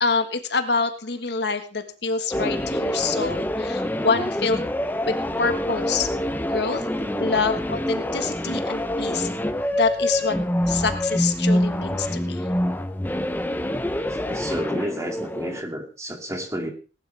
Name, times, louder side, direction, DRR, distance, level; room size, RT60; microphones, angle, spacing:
voice 1, 0.0-4.7 5.1-6.1 6.5-6.8 7.2-9.3 9.8-10.4 10.7-12.5, left 4 dB, 65° left, 8 dB, 1.5 m, -26 dB
sound 1, 2.3-15.6, left 1 dB, 10° left, 0.8 m, -26 dB
voice 2, 6.9-7.4 13.9-16.7, equal, 15° right, 4 dB, 2.4 m, -31 dB
sound 2, 8.7-12.1, equal, 80° left, 3.1 m, -47 dB
18.5 x 11.5 x 3.4 m, 0.34 s
head